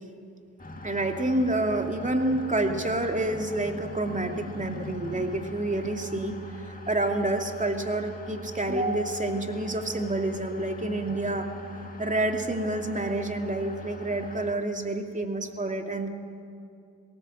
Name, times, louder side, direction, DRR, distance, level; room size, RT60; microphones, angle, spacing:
sound 1, 0.6-14.5, left 1 dB, 25° left, 2.5 m, -42 dB
voice 1, 0.8-6.3 6.7-16.1, right 2 dB, 20° right, 4 dB, 2.6 m, -28 dB
19.0 x 17.5 x 7.7 m, 2.5 s
supercardioid pair, 50°, 35 cm